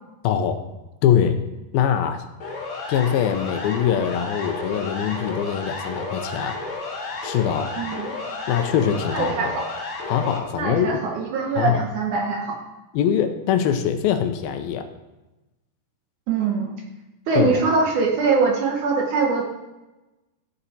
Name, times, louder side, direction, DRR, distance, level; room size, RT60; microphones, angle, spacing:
voice 1, 0.2-0.6 1.0-1.4 1.7-2.2 2.9-6.6 7.2-7.7 8.5-9.5 10.1-11.0 11.6-11.8 12.9-14.9 17.4-17.6, left 9 dB, 80° left, 8 dB, 2.5 m, -22 dB
Siren, 2.4-10.4, left 3 dB, 45° left, 2.2 m, -32 dB
voice 2, 7.8-8.1 9.1-9.6 10.5-12.6 16.3-16.7 17.3-19.4, right 4 dB, 65° right, 1 dB, 2.1 m, -22 dB
13.5 x 7.0 x 4.2 m, 1.0 s
omnidirectional pair, 4.4 m